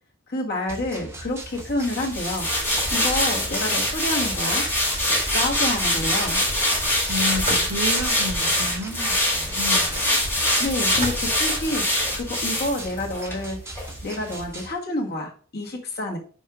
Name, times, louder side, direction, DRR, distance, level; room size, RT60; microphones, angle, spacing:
voice 1, 0.3-2.6 2.9-4.6 5.3-6.4 10.6-11.8 12.1-13.6 14.0-16.2, left 1 dB, 50° left, 0 dB, 1.7 m, -28 dB
sound 1, 0.7-14.7, right 2 dB, 10° right, 1.4 m, -39 dB
sound 2, 1.8-13.4 13.7-13.9, left 1 dB, 10° left, 2.1 m, -24 dB
Telephone, 5.2-12.2, right 1 dB, 30° right, 2.9 m, -38 dB
voice 2, 7.1-10.0, left 1 dB, 80° right, 4 dB, 0.9 m, -31 dB
5.5 x 4.2 x 4.9 m, 0.40 s
head